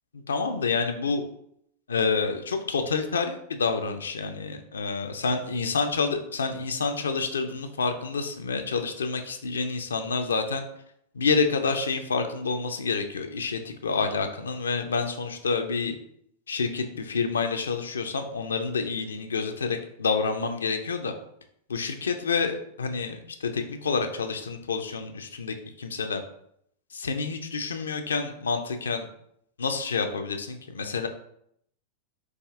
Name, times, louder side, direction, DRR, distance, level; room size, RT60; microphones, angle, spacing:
voice 1, 0.3-1.2 1.9-10.6 11.1-16.0 16.5-21.1 21.7-26.2 26.9-29.1 29.6-31.1, left 4 dB, 70° left, 7 dB, 0.4 m, -28 dB
4.8 x 2.4 x 2.3 m, 0.71 s
figure-of-eight pair, 90°, 0 cm